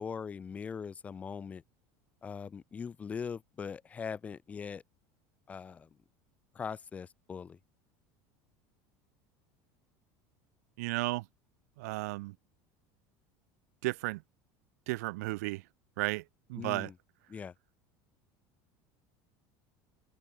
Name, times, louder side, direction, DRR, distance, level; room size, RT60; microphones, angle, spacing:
voice 1, 0.0-1.6 2.2-4.8 5.5-5.9 6.5-7.6 16.6-16.9 17.3-17.5, left 6 dB, 15° left, 1.5 m, -41 dB
voice 2, 10.8-11.2 11.8-12.3 13.8-14.2 14.9-15.6 16.0-16.2 16.5-16.9, right 22 dB, 90° right, 0.6 m, -33 dB
cardioid pair, 170°, 8 cm